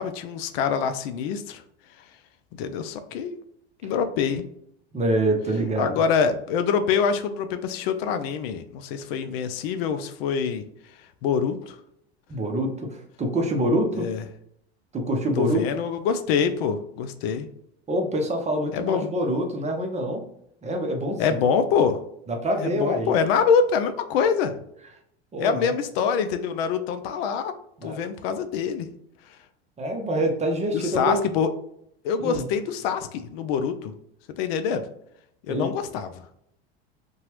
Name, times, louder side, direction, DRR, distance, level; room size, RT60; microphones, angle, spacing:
voice 1, 0.0-1.6 2.6-3.4 3.8-4.4 5.8-10.6 11.2-11.8 14.0-14.2 15.4-17.5 18.7-19.1 21.2-22.0 22.6-24.5 25.4-27.5 27.8-28.9 30.7-31.5 32.0-33.9 34.4-34.8 35.5-36.2, left 6 dB, 70° left, 9 dB, 0.5 m, -25 dB
voice 2, 4.9-6.0 12.3-14.1 14.9-15.6 17.9-20.2 20.6-21.4 22.3-23.1 25.3-25.7 27.8-28.0 29.8-31.2 32.2-32.5 35.5-35.7, right 1 dB, 20° right, 3 dB, 0.6 m, -26 dB
2.8 x 2.3 x 2.9 m, 0.73 s
hypercardioid pair, 90°, 32 cm